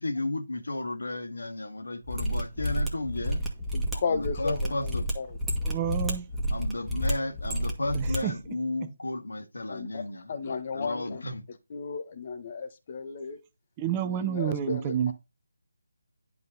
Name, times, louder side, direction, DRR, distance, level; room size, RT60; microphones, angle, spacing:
voice 1, 0.0-3.4 4.1-5.1 6.5-11.4, left 2 dB, 75° left, 2.1 m, -33 dB
Mechanisms, 2.0-8.2 8.4-8.5, equal, 5° right, 1.8 m, -30 dB
voice 2, 3.7-5.4 9.7-10.0 10.3-11.2 11.7-13.4 14.0-15.1, left 5 dB, 35° left, 1.4 m, -34 dB
voice 3, 5.6-6.3 7.9-8.3 13.8-15.1, right 10 dB, 20° right, 0.8 m, -29 dB
10.5 x 5.6 x 4.0 m
figure-of-eight pair, 155°, 0 cm